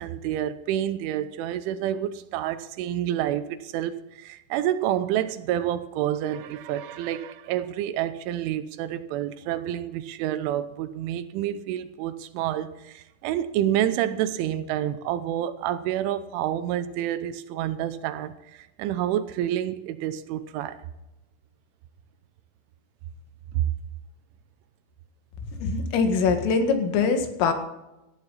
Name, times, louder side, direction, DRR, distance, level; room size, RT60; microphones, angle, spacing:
voice 1, 0.0-20.8 23.5-23.7, right 11 dB, 80° right, 3.1 m, -28 dB
voice 2, 25.5-27.5, left 5 dB, 85° left, 4.4 m, -23 dB
18.5 x 14.0 x 4.1 m
omnidirectional pair, 5.7 m